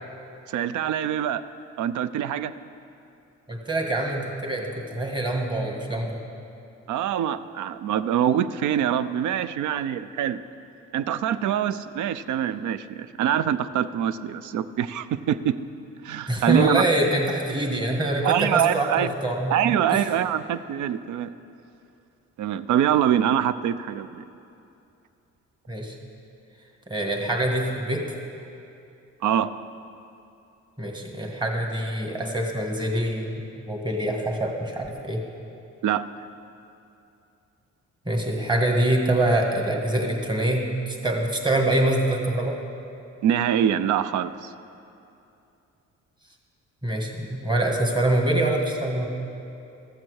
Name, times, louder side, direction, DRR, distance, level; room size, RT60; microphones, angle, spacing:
voice 1, 0.5-1.4 1.8-2.5 6.9-10.4 10.9-15.5 16.0-16.8 18.2-19.1 19.5-21.3 22.4-24.2 29.2-29.5 35.8-36.1 43.2-44.5, right 10 dB, 75° right, 14 dB, 0.5 m, -24 dB
voice 2, 3.5-6.2 16.3-19.5 19.9-20.0 25.7-26.0 26.9-28.0 30.8-35.2 38.1-42.6 46.8-49.1, right 1 dB, 15° right, 1 dB, 1.8 m, -25 dB
14.0 x 7.5 x 6.4 m, 2.7 s
cardioid pair, 90°, 30 cm